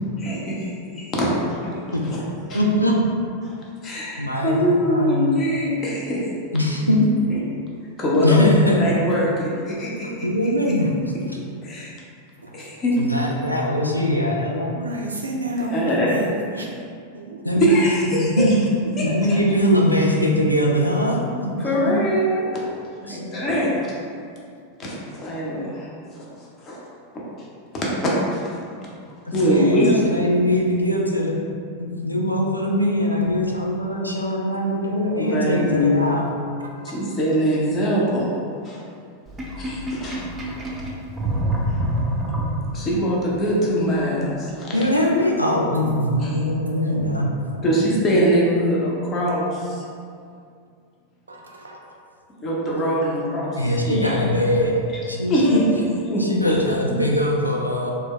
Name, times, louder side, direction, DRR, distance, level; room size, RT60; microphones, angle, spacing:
voice 1, 0.2-1.7 2.0-2.2 2.5-2.6 3.4-3.5 3.8-6.2 7.3-7.4 8.0-10.3 11.6-11.9 12.5-13.0 15.7-16.4 17.6-18.4 19.0-19.4 21.6-22.5 23.0-23.9 24.8-25.9 26.2-26.3 26.6-26.8 27.7-28.5 29.3-29.9 35.1-36.0 36.8-38.3 38.6-38.8 39.6-40.3 42.7-44.8 46.2-46.3 47.6-49.8 52.4-53.6 53.8-54.2 55.3-55.7 56.1-56.6 56.9-57.0, equal, 30° left, -4 dB, 0.6 m, -22 dB
voice 2, 2.5-3.0 4.2-5.3 6.5-7.0 8.2-8.8 10.2-10.9 11.3-11.4 13.0-14.8 17.4-17.7 18.2-18.5 19.0-21.5 21.8-21.9 23.1-23.2 29.3-31.4 31.8-36.3 44.7-47.6 53.6-54.8 55.1-55.6 56.2-57.9, left 1 dB, 90° left, -2 dB, 0.3 m, -21 dB
voice 3, 14.6-16.3 16.6-16.7 17.1-17.4 36.9-37.0 46.8-47.0 51.3-52.0, right 2 dB, 75° right, 0 dB, 0.3 m, -31 dB
Sink (filling or washing), 39.3-43.0, right 1 dB, 15° right, 0.4 m, -26 dB
2.1 x 2.1 x 3.7 m, 2.3 s
figure-of-eight pair, 90°, 0 cm